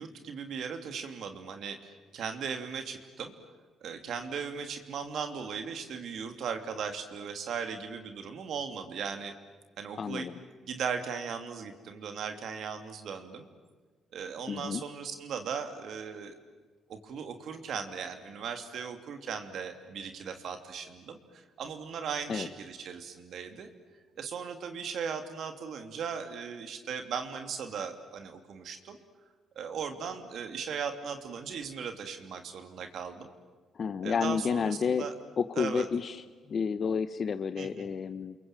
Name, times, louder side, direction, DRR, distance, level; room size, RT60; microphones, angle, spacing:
voice 1, 0.0-3.3 3.8-9.3 9.8-10.3 10.6-13.4 14.1-16.3 16.9-23.7 24.2-29.0 29.5-33.3 34.0-35.1 35.6-35.9 37.6-37.9, right 6 dB, 70° right, 7 dB, 2.9 m, -38 dB
voice 2, 10.0-10.4 14.5-14.8 22.3-22.5 33.7-35.1 35.4-36.2 36.5-38.4, left 6 dB, 50° left, 11 dB, 1.1 m, -30 dB
29.5 x 22.5 x 9.0 m, 1.4 s
cardioid pair, 90°, 0 cm